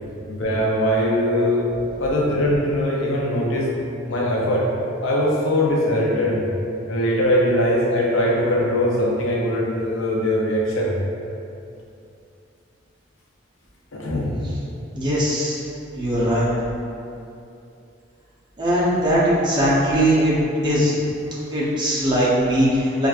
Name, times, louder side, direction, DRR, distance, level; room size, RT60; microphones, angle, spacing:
voice 1, 0.3-1.6 2.0-3.7 4.1-4.7 5.0-6.4 6.9-10.9 13.9-14.4, left 1 dB, 80° left, -4 dB, 0.6 m, -21 dB
voice 2, 14.9-15.6 15.9-16.5 18.6-20.3 20.6-20.9 21.5-23.1, equal, 20° right, -8 dB, 0.6 m, -20 dB
4.4 x 2.4 x 2.4 m, 2.6 s
head